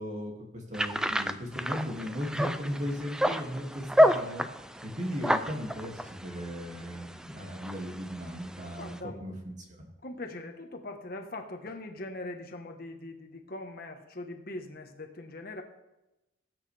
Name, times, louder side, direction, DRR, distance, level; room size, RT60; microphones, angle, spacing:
voice 1, 0.0-4.5 4.8-9.3 9.7-9.9, equal, 40° right, 0 dB, 2.3 m, -36 dB
sound 1, 0.7-9.0, equal, 5° right, 0.4 m, -30 dB
voice 2, 8.8-9.2 10.0-15.6, left 2 dB, 50° left, 4 dB, 1.3 m, -41 dB
19.0 x 8.9 x 3.4 m, 0.95 s
head